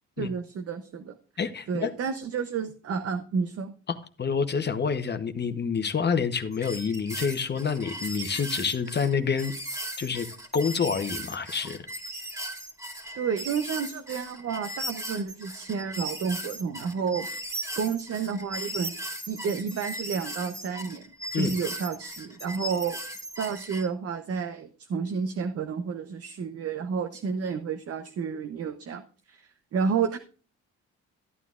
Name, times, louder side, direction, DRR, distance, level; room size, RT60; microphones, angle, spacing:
voice 1, 0.2-1.2 1.7-3.7 13.1-17.3 17.8-21.0 21.3-23.0 23.4-29.0 29.3-30.2, right 6 dB, 50° right, 8 dB, 0.8 m, -30 dB
voice 2, 1.4-1.9 3.9-9.5 10.0-10.3 10.5-11.8 21.3-21.5, left 6 dB, 35° left, 9 dB, 0.9 m, -28 dB
sound 1, 6.5-23.9, right 1 dB, 10° right, 2.2 m, -37 dB
13.5 x 9.1 x 2.4 m, 0.39 s
cardioid pair, 90°, 30 cm